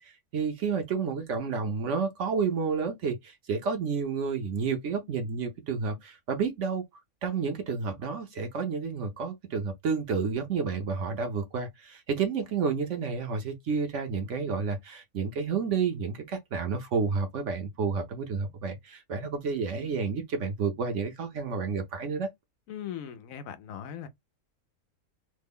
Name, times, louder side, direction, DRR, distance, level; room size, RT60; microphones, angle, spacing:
voice 1, 0.0-6.8 7.2-22.3, right 5 dB, 60° right, 0.9 m, -30 dB
voice 2, 22.7-24.1, left 9 dB, 70° left, 0.9 m, -39 dB
3.2 x 2.1 x 3.4 m
omnidirectional pair, 1.6 m